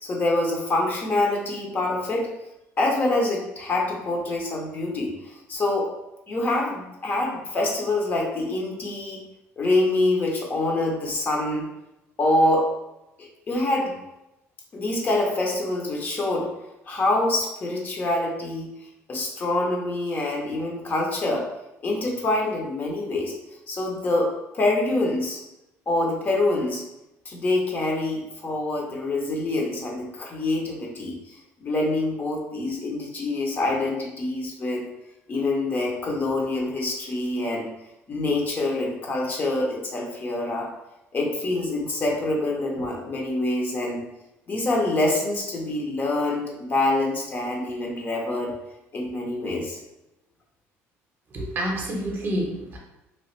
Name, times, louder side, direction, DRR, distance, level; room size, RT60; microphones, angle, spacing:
voice 1, 0.0-2.3 2.8-5.9 6.3-9.2 9.6-11.7 12.2-12.7 13.2-13.9 14.7-16.5 16.9-18.7 19.1-21.5 21.8-23.3 23.7-25.4 25.9-26.8 27.3-31.2 31.6-34.8 35.3-37.6 38.1-40.7 41.1-44.0 44.5-48.5 48.9-49.8, left 2 dB, 35° left, -1 dB, 0.7 m, -25 dB
voice 2, 51.3-52.8, right 1 dB, 40° right, 0 dB, 0.7 m, -28 dB
3.0 x 2.4 x 3.1 m, 0.93 s
cardioid pair, 120°, 6 cm